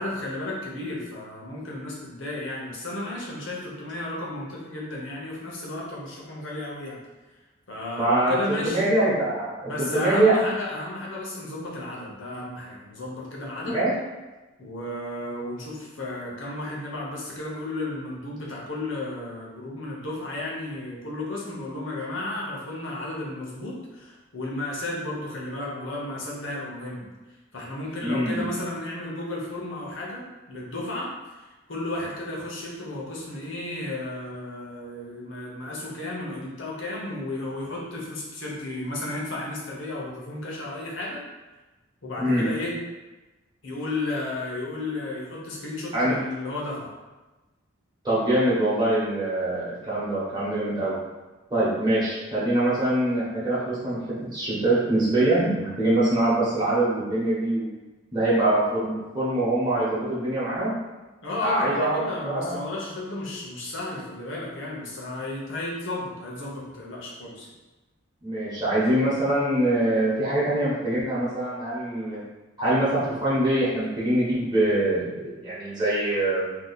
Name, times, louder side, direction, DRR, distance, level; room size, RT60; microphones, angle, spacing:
voice 1, 0.0-7.0 7.7-8.8 9.6-13.9 14.6-27.1 27.5-41.2 42.0-42.8 43.6-46.9 61.2-67.5, left 2 dB, 75° left, -4 dB, 0.9 m, -33 dB
voice 2, 8.0-10.3 13.7-13.9 28.0-28.5 42.2-42.4 45.9-46.1 48.0-51.0 51.5-54.0 54.3-57.6 58.1-60.7 61.4-62.5 68.2-72.2 72.6-76.6, right 1 dB, 20° right, -9 dB, 0.9 m, -24 dB
2.8 x 2.3 x 3.9 m, 1.1 s
head